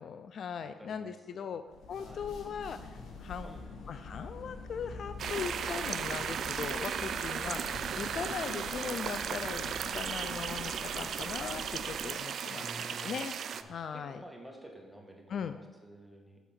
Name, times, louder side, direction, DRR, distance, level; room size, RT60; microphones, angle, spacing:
voice 1, 0.0-1.6 1.9-3.5 3.9-12.7 13.0-13.3 13.7-14.2 15.3-15.6, left 7 dB, 60° left, 10 dB, 0.3 m, -39 dB
voice 2, 0.6-1.6 2.0-2.2 3.4-3.7 12.5-13.2 13.5-16.4, equal, ahead, 1 dB, 1.4 m, -51 dB
sound 1, 1.7-12.2, left 3 dB, 75° left, 1.4 m, -46 dB
sound 2, 5.2-13.6, right 8 dB, 60° right, 0.3 m, -36 dB
7.0 x 4.7 x 5.8 m, 1.3 s
cardioid pair, 90°, 0 cm